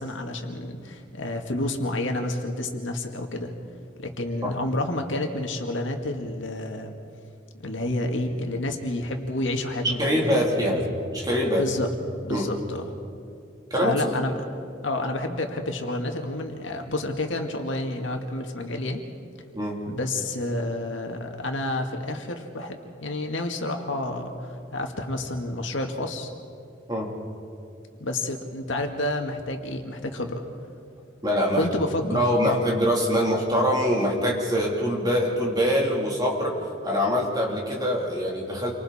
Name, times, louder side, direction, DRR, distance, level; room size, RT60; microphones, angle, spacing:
voice 1, 0.0-3.5 4.0-7.0 7.5-11.0 11.5-11.9 12.2-12.9 13.8-14.3 14.8-19.0 19.9-26.3 28.0-30.4 31.5-32.7, left 1 dB, 80° left, 3 dB, 2.0 m, -29 dB
voice 2, 10.0-10.8 11.1-11.6 12.3-12.5 13.7-14.1 19.5-19.8 26.9-27.1 31.2-31.7 32.0-36.6 36.8-38.7, equal, 20° right, -2 dB, 3.4 m, -24 dB
29.0 x 25.0 x 4.3 m, 2.5 s
head